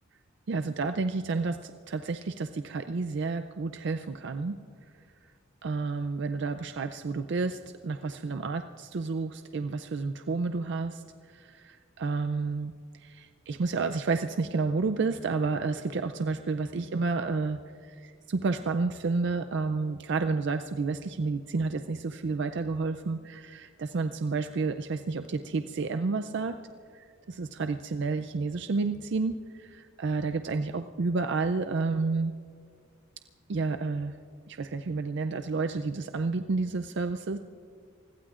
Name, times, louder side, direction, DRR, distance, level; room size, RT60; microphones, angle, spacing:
voice 1, 0.5-4.6 5.6-11.0 11.3-26.6 26.9-32.3 33.5-34.2 34.5-37.4, right 4 dB, 60° right, 8 dB, 0.4 m, -30 dB
28.0 x 21.0 x 2.5 m, 2.2 s
head